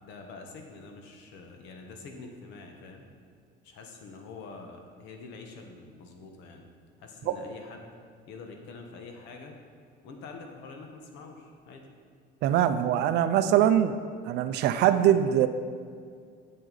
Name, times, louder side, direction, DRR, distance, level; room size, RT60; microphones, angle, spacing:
voice 1, 0.0-3.1 3.6-6.7 7.0-7.9 8.3-9.6 10.0-11.9, left 4 dB, 75° left, 3 dB, 1.2 m, -45 dB
voice 2, 12.4-14.0 14.3-15.5, right 10 dB, 60° right, 10 dB, 0.5 m, -22 dB
7.6 x 7.6 x 4.0 m, 2.1 s
cardioid pair, 165°, 19 cm